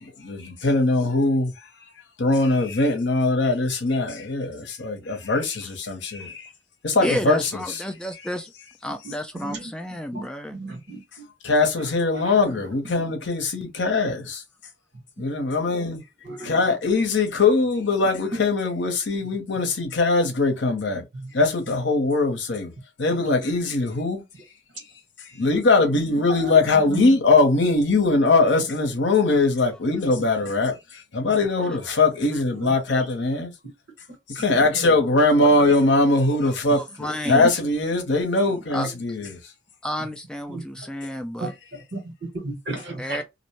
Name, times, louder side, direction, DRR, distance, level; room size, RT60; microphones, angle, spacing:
voice 1, 0.0-1.5 2.2-6.5 6.8-7.4 11.4-14.4 15.2-16.0 16.4-21.0 21.3-22.7 23.0-24.2 25.3-30.8 31.1-33.5 34.3-39.3, left 3 dB, 80° left, 0.8 m, -21 dB
voice 2, 7.0-8.5 8.8-10.6 31.7-32.0 32.3-32.4 36.4-37.6 38.7-38.9 39.8-41.5 43.0-43.2, left 1 dB, 5° left, 0.3 m, -31 dB
voice 3, 10.5-11.0 12.1-12.3 15.2-15.3 16.2-16.6 21.1-21.3 26.9-27.1 32.5-32.7 34.7-34.9 37.4-37.5 40.5-40.6 41.4-41.5 41.9-43.2, right 2 dB, 70° right, 1.4 m, -33 dB
2.6 x 2.1 x 2.9 m
head